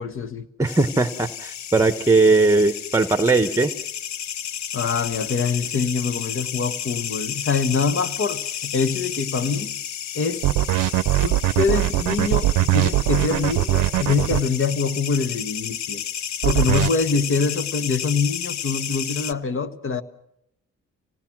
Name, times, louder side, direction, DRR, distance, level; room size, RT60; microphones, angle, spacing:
voice 1, 0.0-0.5 4.7-9.8 10.1-10.4 11.2-16.0 16.4-20.0, left 5 dB, 45° left, 1.5 m, -24 dB
voice 2, 0.6-3.7, right 3 dB, 10° right, 1.1 m, -19 dB
sound 1, 0.7-19.3, left 9 dB, 65° left, 0.9 m, -32 dB
sound 2, 10.4-14.4 16.4-16.9, right 17 dB, 90° right, 0.7 m, -20 dB
27.0 x 18.5 x 6.0 m
cardioid pair, 90°, 30 cm